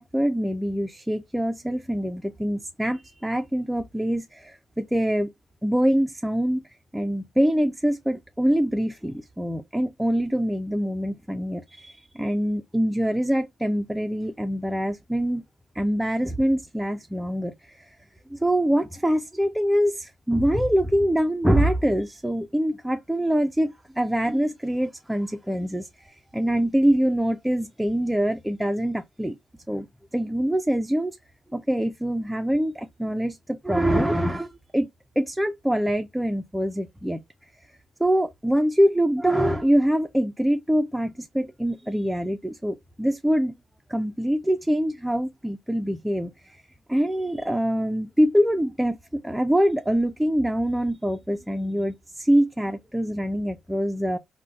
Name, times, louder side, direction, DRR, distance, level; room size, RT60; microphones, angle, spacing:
voice 1, 0.0-5.3 5.6-6.6 6.9-15.4 15.8-17.9 18.3-29.4 29.7-29.9 30.1-31.2 31.5-34.9 35.2-37.2 38.0-43.5 43.9-46.3 46.9-49.0 49.2-54.2, equal, 5° right, 0.3 m, -24 dB
3.8 x 2.0 x 2.4 m
cardioid pair, 80°, 0 cm